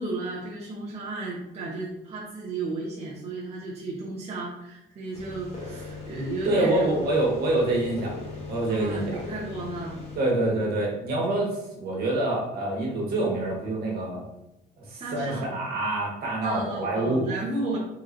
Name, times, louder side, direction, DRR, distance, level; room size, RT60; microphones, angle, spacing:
voice 1, 0.0-7.0 8.7-10.0 14.9-15.5 16.4-17.8, right 2 dB, 40° right, -5 dB, 1.0 m, -33 dB
sound 1, 5.1-10.2, left 3 dB, 40° left, 1.4 m, -39 dB
voice 2, 6.4-8.1 8.5-9.2 10.1-14.2 14.8-17.2, right 2 dB, 65° right, -2 dB, 1.6 m, -26 dB
4.0 x 3.0 x 3.9 m, 0.89 s
cardioid pair, 110°, 17 cm